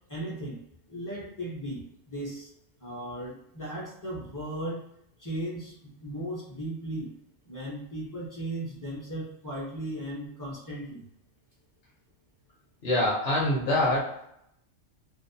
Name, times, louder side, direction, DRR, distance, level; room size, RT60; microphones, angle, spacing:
voice 1, 0.1-0.6 0.9-2.5 2.8-4.8 5.2-7.1 7.5-11.0, right 1 dB, 25° left, -5 dB, 0.4 m, -36 dB
voice 2, 12.8-14.2, left 1 dB, 60° left, -4 dB, 0.9 m, -25 dB
2.5 x 2.0 x 2.6 m, 0.75 s
omnidirectional pair, 1.3 m